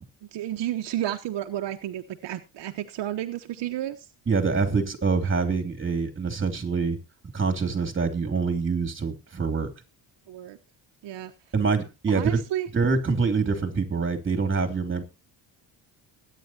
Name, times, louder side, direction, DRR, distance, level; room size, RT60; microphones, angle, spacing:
voice 1, 0.3-4.1 10.3-10.6 11.0-11.3 12.1-12.7, right 12 dB, 65° right, 1.0 m, -31 dB
voice 2, 4.3-7.0 7.3-9.7 11.5-12.4 12.7-15.0, right 4 dB, 25° right, 2.9 m, -25 dB
21.5 x 9.4 x 2.8 m
cardioid pair, 105°, 46 cm